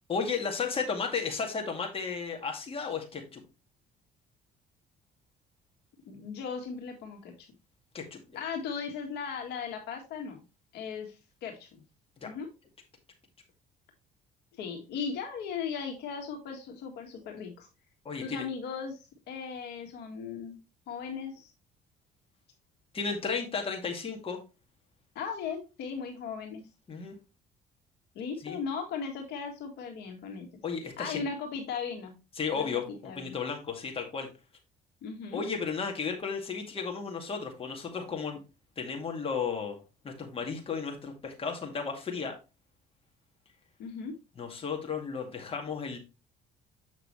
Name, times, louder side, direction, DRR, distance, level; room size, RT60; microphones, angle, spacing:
voice 1, 0.1-3.4 7.9-8.4 12.2-12.3 18.1-18.5 22.9-24.4 26.9-27.2 28.4-28.6 30.6-31.3 32.4-34.3 35.3-38.4 38.8-39.8 40.0-42.4 44.4-46.0, left 5 dB, 35° left, 3 dB, 2.1 m, -34 dB
voice 2, 6.0-7.5 8.4-10.4 10.7-11.8 12.2-12.5 14.6-17.7 18.2-20.6 20.9-21.5 25.2-26.7 28.2-30.6 31.0-32.1 32.6-33.4 35.0-35.4 43.8-44.1, left 6 dB, 75° left, 3 dB, 1.8 m, -37 dB
7.5 x 5.9 x 3.1 m, 0.28 s
cardioid pair, 110°, 17 cm